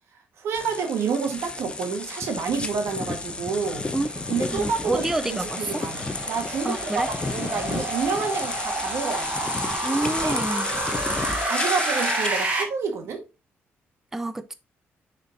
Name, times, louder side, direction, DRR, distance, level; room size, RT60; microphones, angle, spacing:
voice 1, 0.4-3.8 4.3-7.0 7.3-9.5 10.2-10.4 11.5-13.2, right 5 dB, 70° right, 1.8 m, -29 dB
sound 1, 0.5-12.6, left 3 dB, 20° left, 0.9 m, -32 dB
sound 2, 3.1-12.6, right 2 dB, 30° right, 2.3 m, -30 dB
voice 2, 4.5-5.8 6.6-7.1 9.8-10.7 14.1-14.5, right 2 dB, 10° right, 0.4 m, -28 dB
6.3 x 4.4 x 3.9 m
cardioid pair, 110°, 4 cm